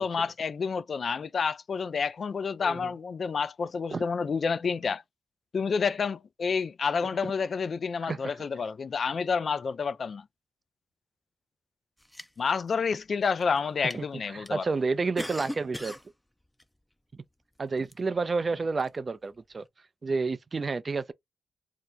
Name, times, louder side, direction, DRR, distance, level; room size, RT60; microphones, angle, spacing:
voice 1, 0.0-5.0 5.5-10.2 12.4-14.6, left 5 dB, 60° left, 0.3 m, -29 dB
voice 2, 8.0-8.3 13.9-16.0 17.1-17.2 17.6-19.6 20.0-21.1, right 4 dB, 45° right, 0.4 m, -30 dB
sound 1, 12.0-12.7 13.3-13.6 13.9-14.0 14.5-14.6 15.0-16.1 16.6-16.7 17.9-18.0 18.7-18.9, left 1 dB, 10° left, 0.5 m, -39 dB
2.8 x 2.1 x 3.8 m
supercardioid pair, 55°, 0 cm